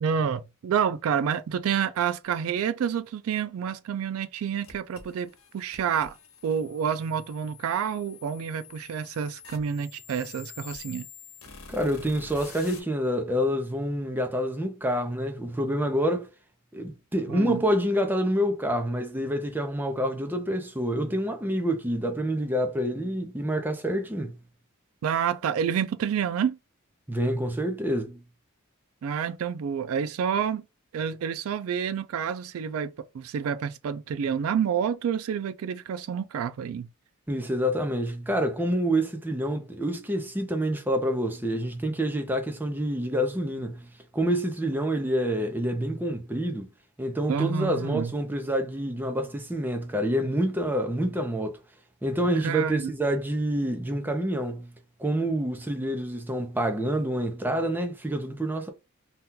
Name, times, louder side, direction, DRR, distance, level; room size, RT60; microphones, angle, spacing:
voice 1, 0.0-6.2 6.4-11.1 17.3-17.6 25.0-26.6 29.0-30.7 30.9-36.9 47.3-48.1 52.4-52.9, right 7 dB, 75° right, 0.3 m, -28 dB
sound 1, 4.6-12.8, left 6 dB, 80° left, 1.0 m, -47 dB
voice 2, 11.7-16.3 16.7-24.4 27.1-28.2 37.3-43.9 44.1-46.7 47.0-51.6 52.0-54.7 55.0-58.7, equal, 10° right, 0.5 m, -27 dB
2.8 x 2.3 x 3.6 m
head